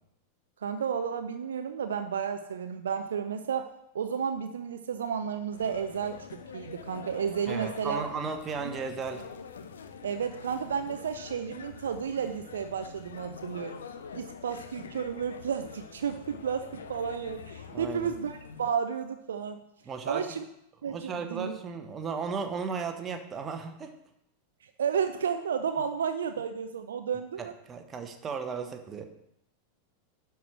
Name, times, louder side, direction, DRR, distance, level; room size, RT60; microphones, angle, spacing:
voice 1, 0.6-8.0 8.6-8.7 10.0-13.8 14.1-19.6 20.1-20.4 20.8-21.6 24.6-27.5, right 7 dB, 65° right, 8 dB, 0.6 m, -32 dB
sound 1, 5.5-18.7, left 6 dB, 65° left, 0.8 m, -45 dB
voice 2, 7.5-9.3 17.7-18.1 19.8-20.3 20.9-23.9 27.4-29.0, right 5 dB, 25° right, 6 dB, 1.2 m, -35 dB
11.0 x 4.7 x 6.1 m, 0.80 s
figure-of-eight pair, 90°, 0 cm